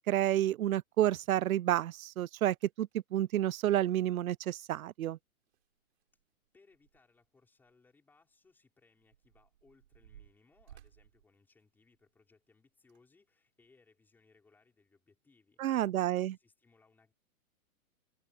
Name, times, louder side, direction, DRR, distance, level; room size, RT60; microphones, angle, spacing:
voice 1, 0.1-5.2 15.6-16.3, right 13 dB, 70° right, 0.6 m, -30 dB
sound 1, 2.6-3.0 4.7-4.8 5.0-5.1 5.5-7.3 7.6-7.7 8.4-12.2 12.8-13.0 13.6-13.7, right 11 dB, 45° right, 6.1 m, -60 dB
voice 2, 6.5-17.1, left 4 dB, 5° left, 5.2 m, -67 dB
hypercardioid pair, 180°, 44 cm